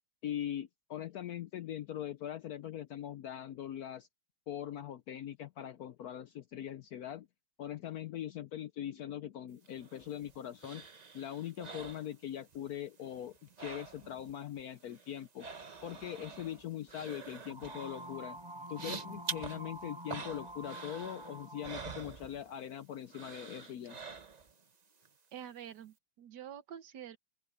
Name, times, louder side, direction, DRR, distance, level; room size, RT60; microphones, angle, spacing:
voice 1, 0.2-4.1 4.5-7.3 7.6-10.8 11.1-15.5 15.8-18.4 18.7-24.0, left 11 dB, 70° left, 0.9 m, -41 dB
sound 1, 9.7-12.7 13.0-14.3 14.6-22.7 23.1-24.6 25.0-25.1, right 5 dB, 35° right, 0.6 m, -47 dB
sound 2, 17.5-22.0, right 1 dB, 10° right, 5.2 m, -47 dB
voice 2, 25.3-27.2, right 9 dB, 65° right, 1.4 m, -47 dB
open air
omnidirectional pair, 2.1 m